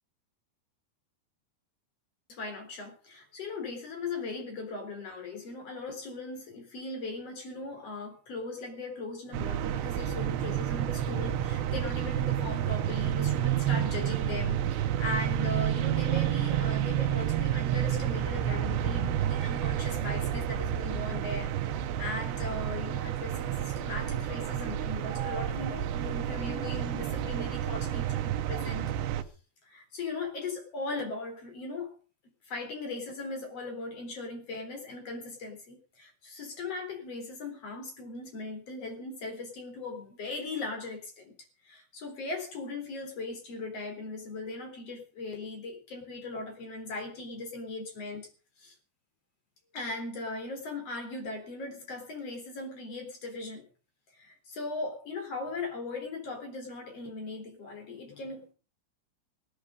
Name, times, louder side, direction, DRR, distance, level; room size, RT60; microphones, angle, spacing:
voice 1, 2.3-28.9 29.6-31.9 32.4-41.3 41.6-48.3 48.6-48.7 49.7-53.7 54.1-58.5, left 3 dB, 35° left, 4 dB, 4.6 m, -38 dB
sound 1, 9.3-29.2, right 11 dB, 85° right, 3.3 m, -30 dB
18.0 x 13.0 x 5.2 m, 0.38 s
omnidirectional pair, 4.9 m